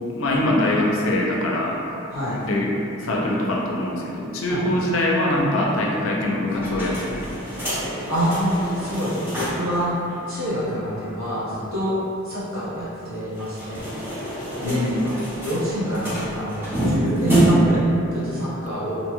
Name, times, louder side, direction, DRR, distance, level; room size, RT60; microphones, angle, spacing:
voice 1, 0.1-1.8 2.4-2.7 3.0-7.3 14.6-15.0, left 1 dB, 65° left, -2 dB, 0.4 m, -23 dB
sound 1, 6.5-9.8 10.1-10.2 10.4-10.5 13.3-17.8, right 1 dB, 10° right, 0.7 m, -26 dB
voice 2, 8.1-9.9 10.3-12.0 12.2-13.9 14.6-15.2 15.4-17.8 18.1-19.0, right 1 dB, 75° right, -10 dB, 1.0 m, -26 dB
2.7 x 2.2 x 2.9 m, 2.8 s
head